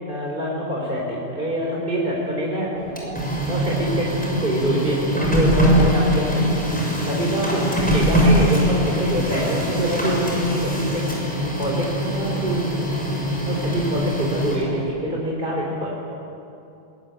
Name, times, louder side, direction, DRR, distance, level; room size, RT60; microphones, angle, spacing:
voice 1, 0.0-2.7 3.4-6.8 7.1-13.0 13.4-16.1, right 1 dB, 40° right, -3 dB, 4.1 m, -25 dB
Printer, 2.8-14.8, equal, 5° left, 6.2 m, -22 dB
23.0 x 21.5 x 9.4 m, 2.7 s
omnidirectional pair, 1.3 m